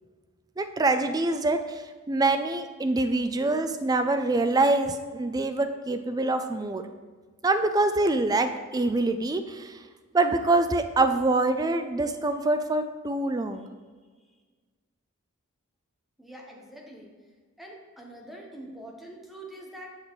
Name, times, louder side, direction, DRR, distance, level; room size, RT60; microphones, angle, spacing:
voice 1, 0.6-6.8 7.4-9.8 10.1-13.7, right 2 dB, 15° right, 8 dB, 0.3 m, -25 dB
voice 2, 16.2-17.1 17.6-19.9, right 1 dB, ahead, -1 dB, 0.9 m, -44 dB
7.0 x 6.4 x 3.1 m, 1.5 s
head